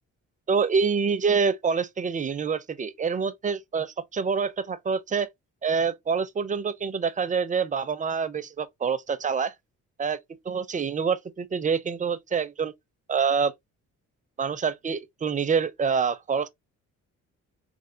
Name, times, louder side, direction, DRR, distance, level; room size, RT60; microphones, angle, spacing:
voice 1, 0.5-5.3 5.6-9.5 10.0-10.2 10.5-12.7 13.1-13.5 14.4-16.5, right 5 dB, 25° right, 0.5 m, -26 dB
3.4 x 2.4 x 2.6 m
cardioid pair, 90°, 30 cm